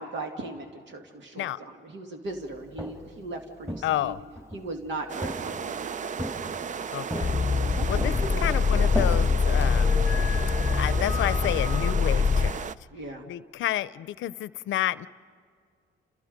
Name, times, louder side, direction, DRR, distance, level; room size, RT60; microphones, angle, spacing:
voice 1, 0.0-4.1 4.5-6.3 7.5-8.9 12.9-13.3, right 2 dB, 70° right, 4 dB, 2.1 m, -38 dB
Walk footsteps, 2.5-3.2 3.6-4.7 5.2-5.8 6.2-6.7 7.1-7.7 8.0-10.2, equal, 15° right, 3.8 m, -36 dB
voice 2, 3.8-4.2 6.9-7.3 7.9-8.1 8.4-10.0 10.8-12.6 13.3-15.1, left 13 dB, 75° left, 18 dB, 0.6 m, -30 dB
sound 1, 5.1-12.8, right 6 dB, 40° right, 0.5 m, -34 dB
sound 2, 7.2-12.5, left 5 dB, 20° left, 0.7 m, -24 dB
29.5 x 28.5 x 5.2 m, 2.1 s
cardioid pair, 90°, 20 cm